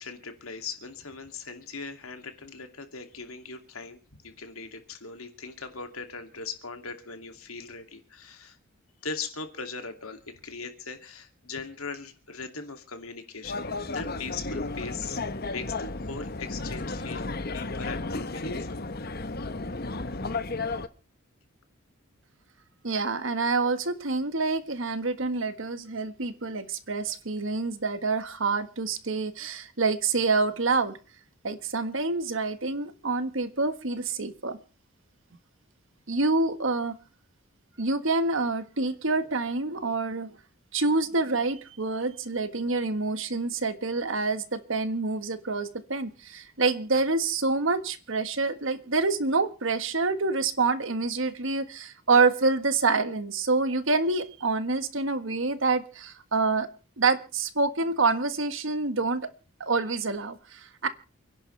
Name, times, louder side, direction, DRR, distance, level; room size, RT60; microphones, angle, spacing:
voice 1, 0.0-8.6 9.0-13.7 13.9-15.2 15.5-19.3, left 4 dB, 90° left, 6 dB, 2.6 m, -40 dB
sound 1, 13.4-20.9, left 3 dB, 45° left, 1.0 m, -33 dB
voice 2, 22.8-31.0 31.4-34.6 36.1-37.0 37.8-40.3 40.7-56.7 57.0-59.2 59.6-60.9, right 3 dB, 65° right, 10 dB, 1.5 m, -27 dB
29.0 x 11.0 x 3.3 m, 0.36 s
head